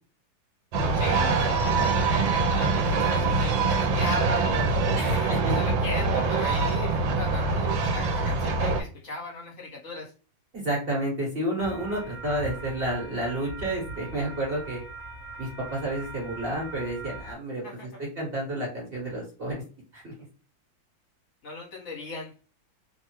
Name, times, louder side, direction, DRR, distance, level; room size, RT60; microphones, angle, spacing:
sound 1, 0.7-8.8, right 3 dB, 80° right, 1.4 m, -24 dB
voice 1, 0.9-10.1 17.6-17.9 21.4-22.3, left 3 dB, 50° left, -3 dB, 1.5 m, -37 dB
voice 2, 5.0-5.6 10.5-14.8 15.4-17.6 18.2-19.6 19.9-20.1, right 1 dB, 35° right, -4 dB, 1.2 m, -30 dB
sound 2, 11.6-17.3, right 2 dB, 70° left, 1.2 m, -41 dB
3.2 x 2.3 x 3.0 m, 0.37 s
omnidirectional pair, 2.1 m